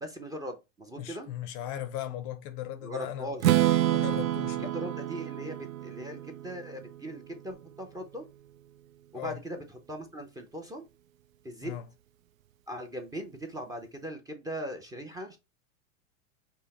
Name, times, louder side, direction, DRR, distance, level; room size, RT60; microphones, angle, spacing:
voice 1, 0.0-1.3 2.8-3.4 4.7-8.3 9.1-10.8 11.4-11.7 12.7-15.4, equal, 10° right, 0.5 m, -39 dB
voice 2, 1.0-3.3 3.9-4.7 9.1-9.4 11.6-11.9, left 11 dB, 35° left, 0.5 m, -37 dB
Strum, 3.4-7.4, right 13 dB, 85° right, 0.5 m, -28 dB
5.4 x 2.0 x 4.1 m
hypercardioid pair, 120°, 39 cm